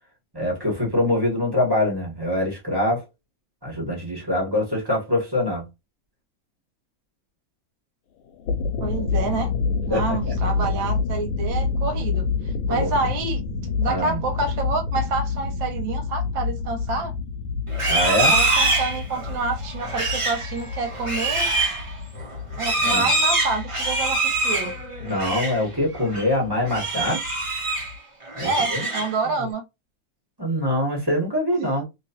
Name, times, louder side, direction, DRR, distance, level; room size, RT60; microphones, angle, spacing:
voice 1, 0.3-3.0 3.6-5.6 9.9-10.3 12.7-12.9 13.8-14.2 17.9-18.3 22.8-23.1 25.0-27.2 28.3-28.9 30.4-31.8, left 1 dB, 15° right, 1.3 m, -24 dB
sound 1, 8.3-28.0, left 5 dB, 80° left, 1.4 m, -29 dB
voice 2, 8.8-9.5 9.9-13.4 13.8-17.1 18.3-21.5 22.6-24.8 28.4-29.6, right 3 dB, 75° right, 1.5 m, -28 dB
Livestock farm animals working animals, 17.7-25.6 26.0-26.3 26.7-27.9 28.3-29.3, right 2 dB, 35° right, 0.4 m, -24 dB
3.1 x 3.0 x 2.8 m
omnidirectional pair, 2.2 m